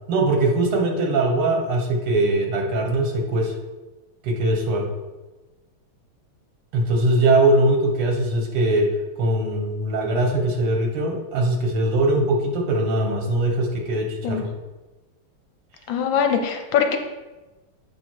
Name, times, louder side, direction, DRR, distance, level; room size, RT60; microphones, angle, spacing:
voice 1, 0.1-3.5 4.2-4.9 6.7-8.9 9.2-14.5, right 2 dB, 85° right, 2 dB, 2.2 m, -21 dB
voice 2, 15.9-17.0, left 7 dB, 70° left, 5 dB, 1.3 m, -22 dB
7.7 x 5.4 x 4.6 m, 1.2 s
omnidirectional pair, 2.4 m